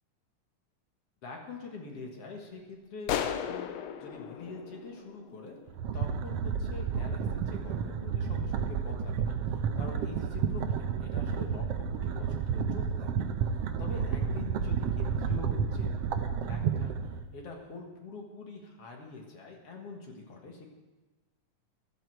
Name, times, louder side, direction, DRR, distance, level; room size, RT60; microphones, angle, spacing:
voice 1, 1.2-3.7 4.0-5.6 5.9-13.1 13.5-20.7, left 3 dB, 50° left, 1 dB, 2.3 m, -45 dB
sound 1, 3.1-5.7, left 9 dB, 75° left, 1.6 m, -35 dB
sound 2, 5.7-17.2, right 6 dB, 90° right, 1.3 m, -31 dB
14.0 x 12.5 x 4.6 m, 1.2 s
omnidirectional pair, 3.7 m